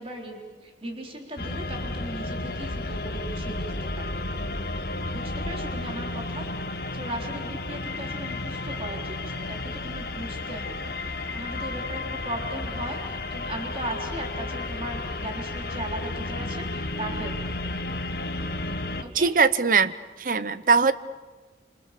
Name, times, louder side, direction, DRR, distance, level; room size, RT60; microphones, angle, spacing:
voice 1, 0.0-3.7 4.0-4.5 5.1-6.5 6.9-11.0 11.3-17.8 19.0-19.3, right 1 dB, 30° right, 1 dB, 3.8 m, -37 dB
sound 1, 1.4-19.0, left 2 dB, 60° left, 1.4 m, -32 dB
voice 2, 19.1-19.9 20.2-20.9, right 5 dB, 50° right, 15 dB, 0.8 m, -20 dB
27.0 x 27.0 x 6.9 m, 1.3 s
head